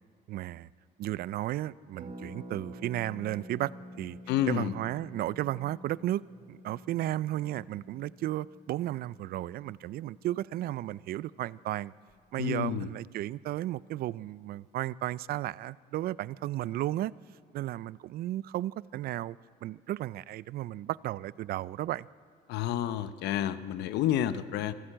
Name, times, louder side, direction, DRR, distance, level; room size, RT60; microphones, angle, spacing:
voice 1, 0.3-0.7 1.0-3.7 4.0-4.2 4.5-6.2 6.5-11.9 12.3-17.1 17.5-22.1, right 14 dB, 65° right, 0.4 m, -34 dB
Harp, 2.0-11.6 11.8-11.9 12.1-12.4, equal, 45° right, 2.6 m, -49 dB
voice 2, 4.3-4.7 12.4-12.9 22.5-24.7, left 11 dB, 85° left, 0.8 m, -29 dB
26.0 x 12.5 x 8.9 m
cardioid pair, 110°, 17 cm